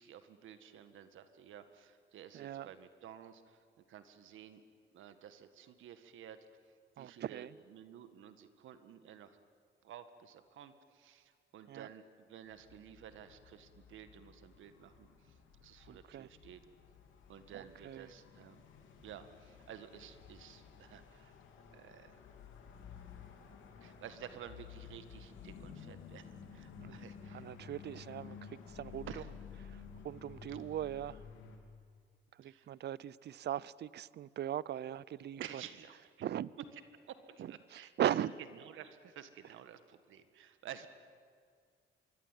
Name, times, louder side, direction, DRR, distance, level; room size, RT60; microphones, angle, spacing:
voice 1, 0.0-4.6 4.9-6.4 7.0-9.4 9.8-16.6 17.3-18.6 19.0-22.2 23.8-27.5 29.1-29.3 32.4-32.7 35.4-36.2 37.1-38.3 38.5-40.9, right 9 dB, 80° right, 10 dB, 1.7 m, -52 dB
voice 2, 2.3-2.7 7.0-7.5 11.7-11.9 15.9-16.3 17.5-18.1 26.8-27.1 27.3-29.2 29.6-31.2 32.3-35.6 36.2-36.5 37.4-38.3, right 11 dB, 60° right, 22 dB, 0.6 m, -39 dB
sound 1, 12.5-31.6, left 7 dB, 80° left, 3.3 m, -53 dB
25.0 x 22.5 x 9.2 m, 2.1 s
cardioid pair, 90°, 20 cm